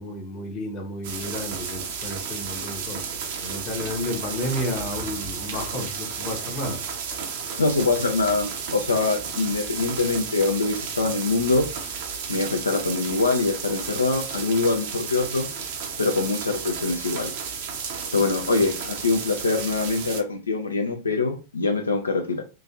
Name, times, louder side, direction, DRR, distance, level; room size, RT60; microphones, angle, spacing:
voice 1, 0.0-3.1 3.4-6.8 18.6-18.7, left 1 dB, 35° left, 0.8 m, -32 dB
sound 1, 1.0-20.2, right 6 dB, 50° right, 0.6 m, -33 dB
voice 2, 7.6-11.9 12.3-15.5 16.0-17.3 18.1-22.4, left 3 dB, 75° left, 0.4 m, -24 dB
3.0 x 2.4 x 2.4 m
figure-of-eight pair, 90°, 0 cm